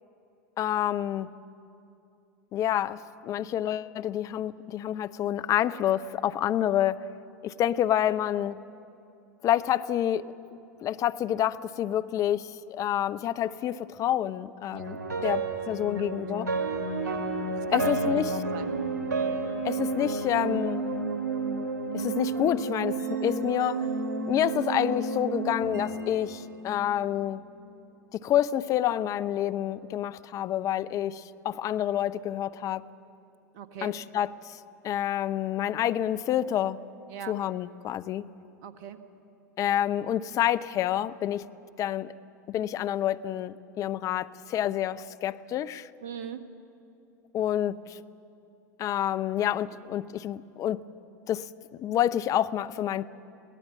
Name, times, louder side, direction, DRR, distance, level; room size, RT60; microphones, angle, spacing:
voice 1, 0.6-1.3 2.5-7.0 7.4-8.6 9.4-10.3 10.8-16.5 17.7-18.3 19.6-20.9 21.9-23.9 24.3-27.4 28.1-32.8 33.8-36.8 37.3-38.3 39.6-41.4 41.8-42.1 42.5-45.9 47.3-48.0 48.8-50.8 51.3-51.5 51.8-53.1, left 11 dB, 35° left, 13 dB, 0.6 m, -28 dB
voice 2, 14.7-15.2 15.9-16.1 17.0-17.2 17.5-18.7 33.5-33.9 37.1-37.4 38.6-39.0 46.0-46.4, right 8 dB, 50° right, 10 dB, 1.4 m, -39 dB
sound 1, 14.8-27.1, right 3 dB, 70° right, 2.7 m, -31 dB
22.5 x 17.5 x 7.2 m, 2.7 s
figure-of-eight pair, 85°, 10 cm